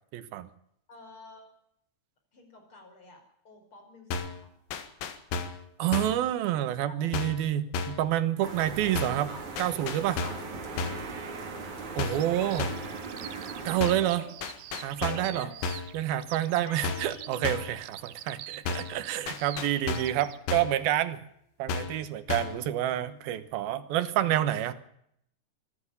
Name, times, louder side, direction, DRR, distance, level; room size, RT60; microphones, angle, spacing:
voice 1, 0.1-0.5 5.8-10.2 12.0-12.7 13.7-14.2 14.8-15.5 15.9-21.2 21.6-24.7, right 12 dB, 70° right, 12 dB, 2.8 m, -28 dB
voice 2, 0.9-1.5 2.3-4.5 6.9-7.1 10.1-10.5 10.9-12.1 12.4-12.9 13.2-13.7 14.0-14.3 15.0-15.5 16.6-17.4, left 2 dB, 30° left, 3 dB, 5.7 m, -49 dB
sound 1, 4.1-4.4 4.7-5.6 5.9-6.2 7.1-7.5 7.7-8.1 9.0-9.3 9.6-10.5 10.8-11.1 12.0-12.3 12.6-12.9 13.8-14.1 14.4-15.3 15.6-15.9 16.8-17.2 17.4-17.8 18.7-19.0 19.3-20.2 20.5-20.8 21.7-22.0 22.3-22.6, left 4 dB, 80° left, 3.9 m, -33 dB
sound 2, 8.4-13.8, right 4 dB, 45° right, 4.2 m, -39 dB
Bird vocalization bird call bird song, 12.0-20.4, right 12 dB, 85° right, 1.8 m, -46 dB
25.0 x 10.5 x 9.8 m, 0.72 s
omnidirectional pair, 5.0 m